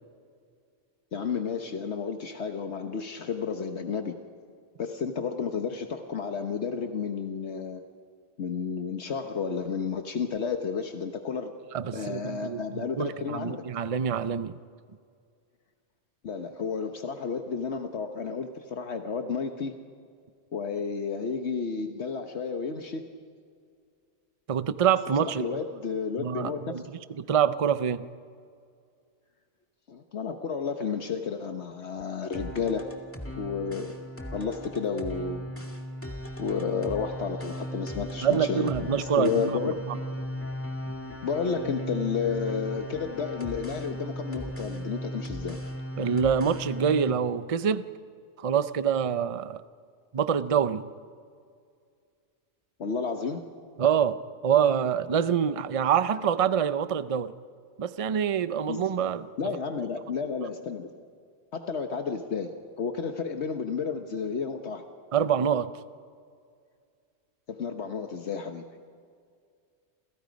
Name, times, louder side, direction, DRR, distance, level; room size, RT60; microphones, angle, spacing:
voice 1, 1.1-4.2 4.8-7.8 8.4-11.5 11.9-13.6 16.2-19.7 20.5-23.1 25.2-26.6 29.9-32.9 33.4-34.0 34.3-35.5 36.4-39.8 40.9-41.0 41.2-45.6 52.8-53.4 58.7-58.9 59.4-60.9 61.5-64.8 67.5-68.6, left 5 dB, 75° left, 6 dB, 1.4 m, -31 dB
voice 2, 11.7-14.6 24.5-25.5 26.2-26.8 27.2-28.1 38.2-39.6 46.0-47.8 48.4-49.6 50.1-50.8 53.8-57.3 57.8-59.3 65.1-65.7, right 8 dB, 35° right, 13 dB, 0.6 m, -26 dB
sound 1, 32.3-47.1, equal, 10° left, 2.0 m, -37 dB
29.5 x 28.5 x 5.2 m, 2.2 s
omnidirectional pair, 1.2 m